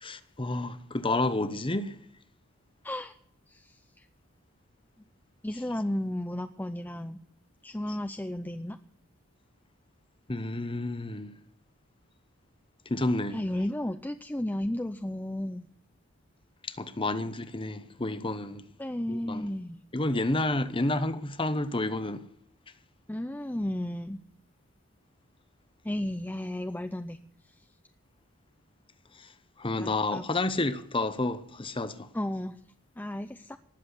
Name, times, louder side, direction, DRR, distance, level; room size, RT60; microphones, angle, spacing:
voice 1, 0.0-2.0 10.3-11.3 12.9-13.4 16.7-18.7 19.1-19.5 19.9-22.2 29.6-32.1, left 2 dB, 25° left, 1.0 m, -30 dB
voice 2, 2.8-3.1 3.5-4.1 5.4-7.2 7.6-8.8 13.3-15.7 18.8-19.8 23.1-24.2 25.8-27.2 27.6-27.7 29.8-30.2 32.1-32.6 33.0-33.6, left 1 dB, 10° left, 0.5 m, -33 dB
19.5 x 7.6 x 8.2 m
head